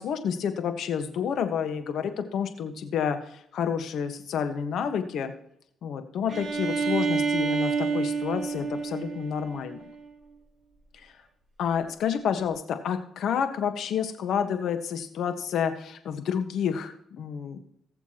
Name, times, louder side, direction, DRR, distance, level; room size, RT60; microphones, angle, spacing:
voice 1, 0.0-5.3 5.8-9.8 11.6-17.6, left 7 dB, 70° left, 8 dB, 1.4 m, -29 dB
Bowed string instrument, 6.3-10.0, right 5 dB, 30° right, 3.7 m, -29 dB
19.5 x 7.0 x 3.0 m, 0.73 s
cardioid pair, 90°, 0 cm